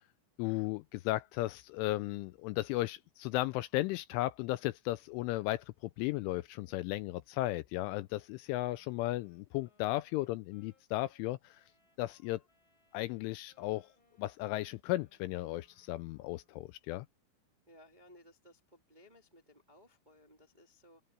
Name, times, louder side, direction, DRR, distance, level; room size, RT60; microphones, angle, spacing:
voice 1, 0.4-5.6 6.0-11.6 12.0-12.4 12.9-13.9 14.2-17.1, left 17 dB, 85° left, 2.9 m, -35 dB
Wind instrument woodwind instrument, 8.5-16.8, left 4 dB, 20° left, 8.3 m, -72 dB
voice 2, 17.7-21.0, left 1 dB, 25° right, 0.9 m, -60 dB
omnidirectional pair, 5.9 m